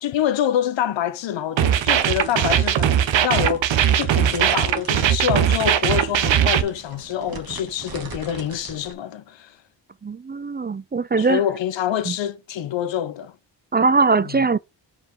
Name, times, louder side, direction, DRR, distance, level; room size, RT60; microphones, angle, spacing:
voice 1, 0.0-3.7 4.0-9.6 11.2-13.3 14.1-14.5, left 10 dB, 90° left, 0.9 m, -26 dB
sound 1, 1.6-6.6, right 10 dB, 90° right, 0.9 m, -19 dB
sound 2, 1.9-8.9, right 4 dB, 50° right, 2.2 m, -41 dB
voice 2, 10.0-11.4 13.7-14.6, right 4 dB, 25° right, 0.4 m, -20 dB
5.5 x 5.0 x 4.7 m
cardioid pair, 60°, 44 cm